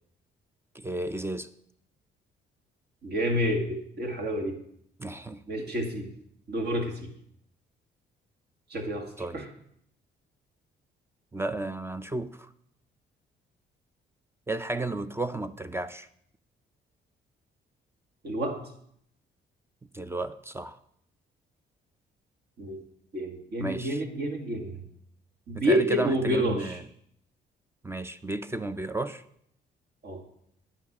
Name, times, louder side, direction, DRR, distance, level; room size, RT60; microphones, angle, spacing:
voice 1, 0.7-1.5 5.0-5.4 9.2-9.4 11.3-12.5 14.5-16.1 19.9-20.8 23.6-24.0 25.5-26.8 27.8-29.2, right 2 dB, 10° right, 12 dB, 0.4 m, -33 dB
voice 2, 3.0-4.6 5.5-6.1 6.5-7.1 8.7-9.5 18.2-18.6 22.6-22.8 23.1-24.8 25.5-26.8 30.0-30.2, equal, 55° right, 4 dB, 2.0 m, -29 dB
9.5 x 6.1 x 6.0 m, 0.70 s
cardioid pair, 90°, 20 cm